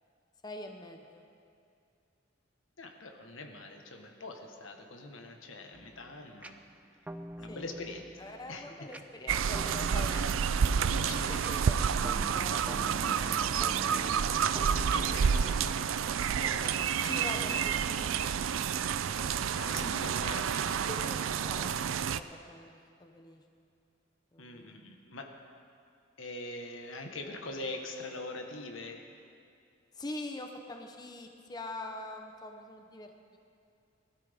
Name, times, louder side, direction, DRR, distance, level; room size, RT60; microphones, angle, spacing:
voice 1, 0.4-1.2 7.5-7.6 8.2-10.3 11.3-13.2 17.0-18.7 20.8-23.4 24.3-24.9 29.9-33.4, left 1 dB, 20° left, 4 dB, 0.8 m, -44 dB
voice 2, 2.8-6.6 7.4-8.0 8.5-8.7 10.1-11.9 14.5-17.7 19.6-20.8 24.4-25.3 26.2-29.0, left 2 dB, 80° left, 3 dB, 1.4 m, -43 dB
sound 1, 5.7-16.3, right 1 dB, 5° right, 0.3 m, -46 dB
sound 2, 9.3-22.2, right 7 dB, 85° right, 0.4 m, -29 dB
20.5 x 13.0 x 3.6 m, 2.5 s
head